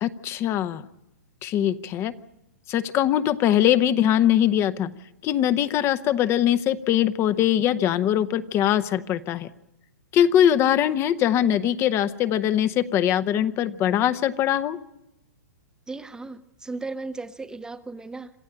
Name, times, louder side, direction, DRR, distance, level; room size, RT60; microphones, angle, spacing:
voice 1, 0.0-0.8 1.4-2.1 2.7-4.9 5.2-9.5 10.1-14.8, left 11 dB, 30° left, 13 dB, 0.9 m, -22 dB
voice 2, 15.9-18.3, right 3 dB, 10° right, 10 dB, 0.7 m, -36 dB
27.0 x 14.0 x 8.8 m, 0.88 s
hypercardioid pair, 130°, 9 cm